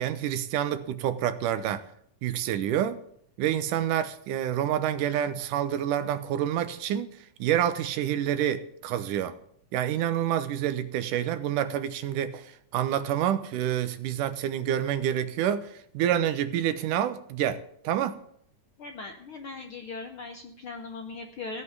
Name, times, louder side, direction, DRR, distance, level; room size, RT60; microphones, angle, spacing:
voice 1, 0.0-1.8 2.2-3.0 3.4-9.4 9.7-18.2, right 10 dB, 80° right, 2.4 m, -28 dB
voice 2, 18.8-21.6, left 3 dB, 70° left, 1.3 m, -39 dB
16.0 x 5.6 x 9.4 m
omnidirectional pair, 3.6 m